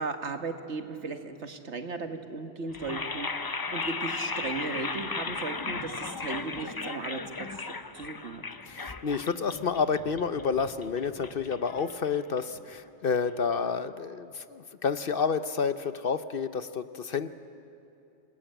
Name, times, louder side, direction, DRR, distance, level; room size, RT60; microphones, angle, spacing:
voice 1, 0.0-3.3 3.7-8.4, right 4 dB, 70° right, 7 dB, 1.8 m, -36 dB
sound 1, 2.7-12.8, left 4 dB, 25° left, 0.5 m, -36 dB
voice 2, 8.7-17.3, left 5 dB, 55° left, 12 dB, 0.9 m, -30 dB
27.5 x 20.5 x 9.0 m, 2.7 s
omnidirectional pair, 1.2 m